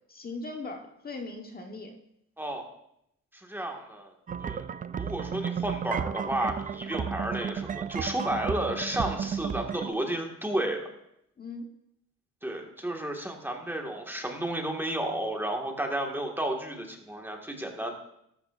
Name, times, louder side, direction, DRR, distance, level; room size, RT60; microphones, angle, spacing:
voice 1, 0.1-1.9 11.4-11.7, left 3 dB, 30° left, 2 dB, 1.3 m, -39 dB
voice 2, 3.3-4.1 4.4-10.8 12.4-17.9, right 1 dB, 5° right, 1 dB, 1.9 m, -32 dB
sound 1, 4.3-9.9, right 7 dB, 25° right, 0.4 m, -33 dB
13.0 x 12.0 x 2.6 m, 0.78 s
cardioid pair, 90°, 30 cm